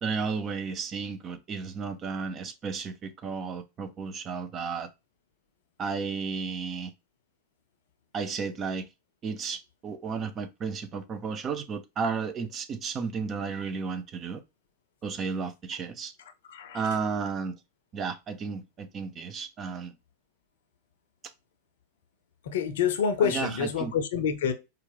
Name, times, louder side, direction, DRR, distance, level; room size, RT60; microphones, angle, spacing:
voice 1, 0.0-4.9 5.8-6.9 8.1-8.9 9.2-14.4 15.0-16.1 16.7-17.6 17.9-19.9 23.2-23.9, right 5 dB, 25° right, 0.6 m, -33 dB
voice 2, 16.5-16.8 22.5-24.5, left 7 dB, 60° left, 0.7 m, -27 dB
4.6 x 2.4 x 3.4 m
figure-of-eight pair, 90°, 0 cm